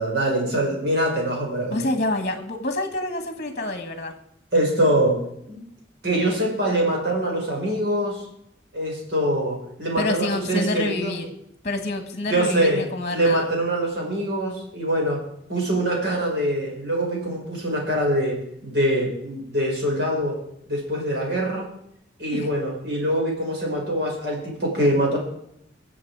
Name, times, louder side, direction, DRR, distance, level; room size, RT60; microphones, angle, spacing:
voice 1, 0.0-1.7 4.5-5.6 6.0-8.2 8.7-11.2 12.3-12.8 13.1-15.2 15.5-18.4 18.6-20.4 20.7-21.7 22.2-25.2, right 1 dB, 60° right, -1 dB, 5.1 m, -24 dB
voice 2, 1.7-4.1 10.0-11.3 11.6-13.5 22.3-22.5, left 2 dB, 40° left, 6 dB, 1.6 m, -27 dB
22.5 x 7.5 x 4.8 m, 0.73 s
head